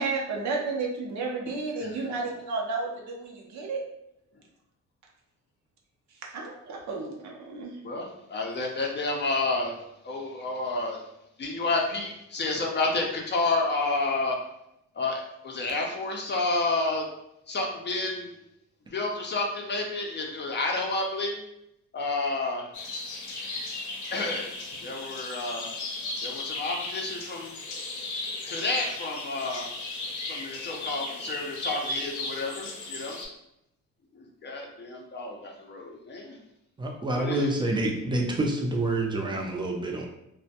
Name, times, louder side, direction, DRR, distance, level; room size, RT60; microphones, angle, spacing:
voice 1, 0.0-3.8 6.2-7.8, right 3 dB, 70° right, 0 dB, 0.6 m, -32 dB
voice 2, 7.8-9.8 10.0-11.0 11.4-14.4 15.0-17.0 17.5-18.3 18.9-21.4 21.9-22.7 24.1-24.5 24.8-25.7 26.2-27.5 28.5-29.7 30.3-33.2 34.4-36.4 37.2-37.5, left 3 dB, 35° left, 1 dB, 0.5 m, -30 dB
sound 1, 22.7-33.3, left 2 dB, 75° left, 0.6 m, -36 dB
voice 3, 36.8-40.1, right 1 dB, 15° right, 0 dB, 0.5 m, -27 dB
2.1 x 2.1 x 2.7 m, 0.84 s
cardioid pair, 90°, 30 cm